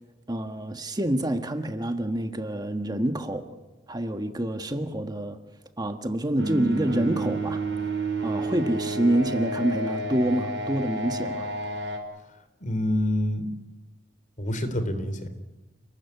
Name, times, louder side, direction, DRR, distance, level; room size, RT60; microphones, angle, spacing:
voice 1, 0.3-3.4 3.9-5.4 5.8-7.6 8.2-11.5, right 1 dB, 20° right, 7 dB, 1.5 m, -27 dB
sound 1, 6.4-12.0, right 2 dB, 85° right, 5.2 m, -30 dB
voice 2, 12.6-13.4 14.4-15.3, left 1 dB, 45° left, 10 dB, 3.4 m, -27 dB
29.5 x 20.0 x 8.4 m, 1.1 s
head